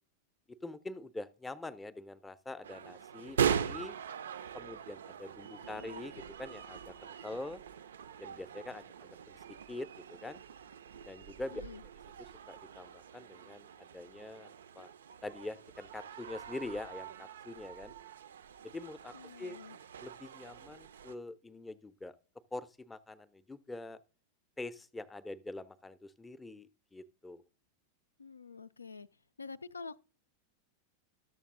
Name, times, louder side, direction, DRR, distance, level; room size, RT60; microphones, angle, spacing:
voice 1, 0.5-3.4 3.6-4.0 4.5-7.6 8.2-9.4 9.7-10.4 11.1-11.6 12.5-14.5 14.7-14.9 15.2-17.9 18.6-19.6 20.0-22.2 22.5-24.0 24.6-27.4, left 2 dB, 10° left, 0.5 m, -44 dB
sound 1, 2.6-21.2, right 8 dB, 65° right, 0.4 m, -41 dB
voice 2, 11.5-11.8 19.1-19.8 28.2-29.1 29.4-30.0, left 4 dB, 80° left, 0.3 m, -47 dB
12.0 x 7.1 x 3.7 m
figure-of-eight pair, 90°, 0 cm